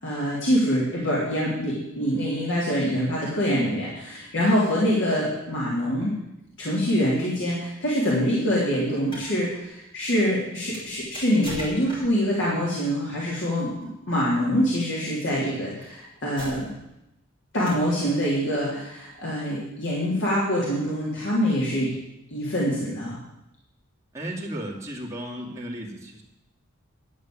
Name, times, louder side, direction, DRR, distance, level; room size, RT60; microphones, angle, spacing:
voice 1, 0.0-6.1 6.6-16.7 17.5-21.9 22.3-23.2, equal, 65° left, -6 dB, 3.3 m, -25 dB
sound 1, 9.0-9.3 10.7-12.3 13.6-13.8 15.1-15.2 15.8-15.9 16.4-16.9 17.7-18.0, equal, 25° left, 6.2 m, -39 dB
voice 2, 24.1-26.2, right 1 dB, 15° right, -4 dB, 2.7 m, -34 dB
11.5 x 7.7 x 8.7 m, 0.87 s
head